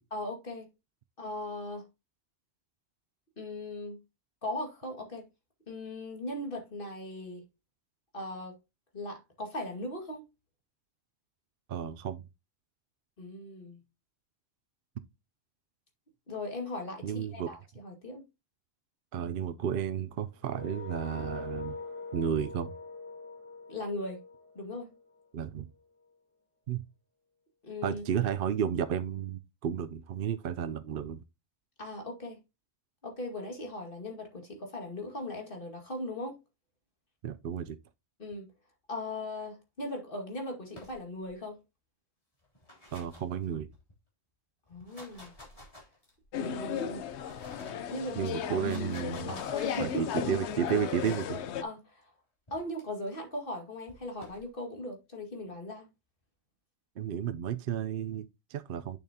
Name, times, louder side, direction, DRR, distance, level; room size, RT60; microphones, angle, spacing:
voice 1, 0.1-0.7 1.2-1.9 3.4-4.0 4.4-5.3 5.7-7.4 8.1-8.6 8.9-10.2 13.2-13.8 16.3-18.2 23.7-24.2 24.6-24.9 27.6-28.0 31.8-32.4 33.0-36.4 38.2-38.5 38.9-41.6 44.7-45.4 46.3-47.1 47.9-48.3 49.3-50.2 51.6-52.1 52.5-55.9, left 1 dB, 50° left, 2.2 m, -38 dB
voice 2, 11.7-12.2 17.0-17.5 19.1-21.8 22.1-22.7 25.3-25.7 26.7-26.8 27.8-31.2 37.2-37.8 42.9-43.7 48.1-49.3 49.8-51.4 57.0-59.0, right 8 dB, 60° right, 0.7 m, -32 dB
sound 1, 20.4-25.3, left 4 dB, 10° left, 1.1 m, -43 dB
sound 2, 40.7-41.4 42.4-43.9 44.7-46.3 46.9-47.9 48.4-49.8 51.0-51.4 52.5-52.8 53.9-54.5, left 1 dB, 30° left, 3.4 m, -53 dB
sound 3, 46.3-51.6, left 8 dB, 80° left, 1.0 m, -35 dB
8.6 x 7.0 x 2.8 m
omnidirectional pair, 1.1 m